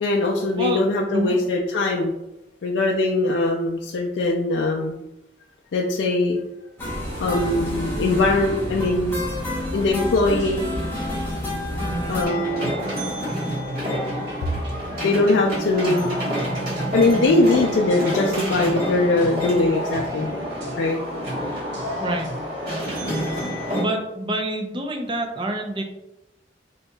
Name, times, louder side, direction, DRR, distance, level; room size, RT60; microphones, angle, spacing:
voice 1, 0.0-2.1 2.6-5.0 5.7-6.4 7.2-9.2 9.7-10.7 12.1-12.7 15.0-16.2 16.9-20.3 20.8-21.0, left 2 dB, 80° left, -1 dB, 0.4 m, -21 dB
sound 1, 6.8-12.3, left 1 dB, 15° left, 0.8 m, -28 dB
sound 2, 9.2-9.6 10.4-11.6 12.6-12.9 13.3-14.9 16.0-17.3 17.9-19.5 19.9-20.9 21.2-21.5 21.7-22.5, equal, 70° right, 0.8 m, -37 dB
sound 3, 12.2-23.8, equal, 55° right, 1.2 m, -28 dB
voice 2, 22.0-22.3 23.7-25.8, right 1 dB, 25° right, 3 dB, 0.4 m, -27 dB
4.0 x 2.7 x 2.2 m, 0.90 s
head